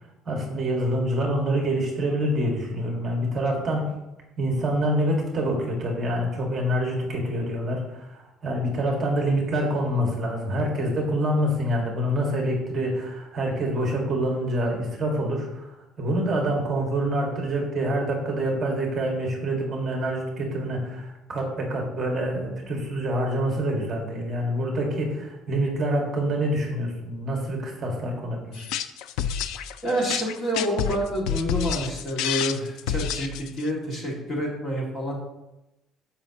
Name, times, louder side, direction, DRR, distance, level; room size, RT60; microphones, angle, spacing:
voice 1, 0.3-3.9 4.4-28.7, right 1 dB, 25° right, 0 dB, 1.8 m, -26 dB
sound 1, 28.5-33.7, left 8 dB, 90° left, 0.5 m, -29 dB
voice 2, 29.8-35.2, equal, 30° left, -2 dB, 2.1 m, -28 dB
14.0 x 5.6 x 2.9 m, 0.94 s
cardioid pair, 170°, 0 cm